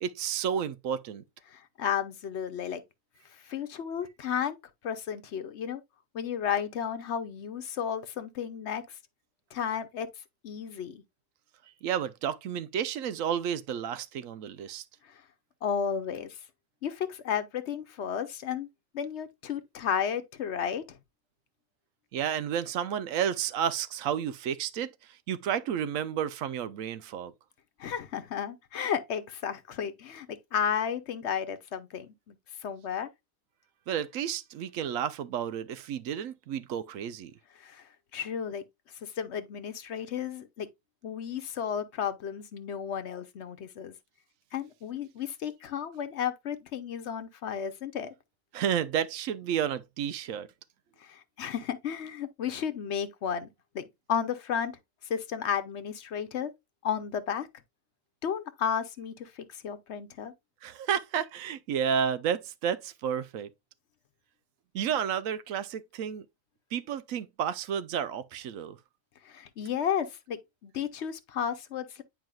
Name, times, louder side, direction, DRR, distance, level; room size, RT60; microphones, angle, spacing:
voice 1, 0.0-1.2 11.8-14.8 22.1-27.3 33.9-37.3 48.5-50.5 60.6-63.5 64.7-66.3 66.7-68.8, right 8 dB, 90° right, 1.0 m, -31 dB
voice 2, 1.5-2.8 3.4-4.6 4.8-5.8 6.1-9.0 9.5-10.1 10.4-11.0 15.0-15.2 15.6-16.4 16.8-18.7 18.9-21.0 27.8-32.4 32.6-33.1 37.6-38.6 39.0-40.7 41.0-43.9 44.5-48.1 51.0-53.5 53.7-53.8 54.1-54.7 55.1-56.5 56.8-57.5 58.2-60.3 69.2-72.0, left 8 dB, 65° left, 1.0 m, -33 dB
9.0 x 4.8 x 2.3 m
omnidirectional pair, 1.4 m